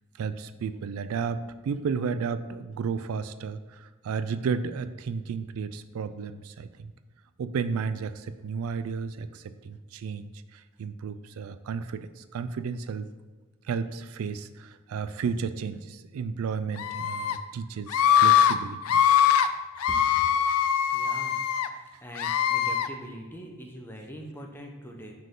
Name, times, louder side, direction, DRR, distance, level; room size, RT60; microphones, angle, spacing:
voice 1, 0.2-6.9 7.4-13.1 13.7-19.0, right 5 dB, 75° right, 13 dB, 0.3 m, -33 dB
Screaming, 16.8-17.4 17.9-18.5 18.8-19.5 19.8-21.7 22.2-22.9, left 9 dB, 80° left, 0.4 m, -22 dB
voice 2, 20.9-21.4 22.0-25.1, equal, 10° left, 1 dB, 0.7 m, -42 dB
6.1 x 4.6 x 3.7 m, 1.3 s
head